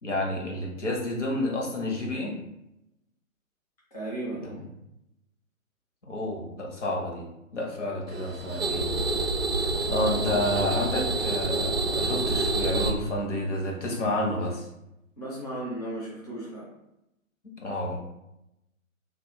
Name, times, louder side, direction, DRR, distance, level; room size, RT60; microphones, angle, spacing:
voice 1, 0.0-2.4 4.3-4.5 6.1-7.3 7.5-8.9 9.5-14.7 17.6-18.0, left 1 dB, 55° left, -1 dB, 0.8 m, -30 dB
voice 2, 3.9-4.6 15.2-16.7, right 1 dB, 30° left, -6 dB, 0.4 m, -35 dB
sound 1, 8.1-12.9, right 3 dB, 45° right, 0.6 m, -27 dB
2.3 x 2.1 x 2.9 m, 0.88 s
figure-of-eight pair, 135°, 42 cm